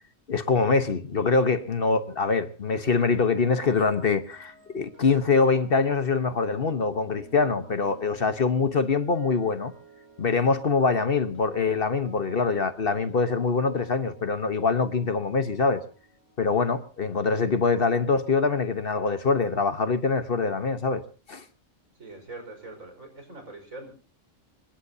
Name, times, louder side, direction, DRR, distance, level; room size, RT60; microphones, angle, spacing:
voice 1, 0.3-9.7 10.2-15.8 16.4-21.0 21.3-21.4, left 4 dB, 45° left, 1.3 m, -24 dB
sound 1, 4.1-18.1 18.4-18.7, right 4 dB, 70° right, 7.2 m, -53 dB
voice 2, 22.0-23.9, right 2 dB, 85° right, 5.6 m, -42 dB
25.0 x 20.5 x 2.8 m
omnidirectional pair, 1.4 m